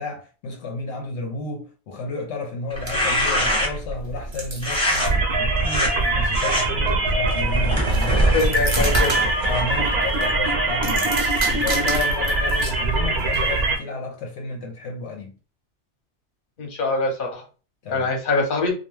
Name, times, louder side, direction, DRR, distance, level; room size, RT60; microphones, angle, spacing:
voice 1, 0.0-8.9 9.4-11.1 11.5-15.3 17.8-18.1, left 3 dB, 75° left, 0.9 m, -32 dB
sound 1, 2.7-3.9 4.6-5.1 5.6-5.9 6.3-6.6 7.3-9.8, left 1 dB, 5° left, 0.7 m, -24 dB
sound 2, 2.7-13.8, right 2 dB, 35° right, 0.5 m, -32 dB
sound 3, 5.0-13.8, right 2 dB, 65° right, 0.9 m, -22 dB
voice 2, 8.3-9.1 16.6-17.4 17.9-18.7, left 3 dB, 50° left, 0.9 m, -23 dB
2.3 x 2.2 x 3.0 m
omnidirectional pair, 1.2 m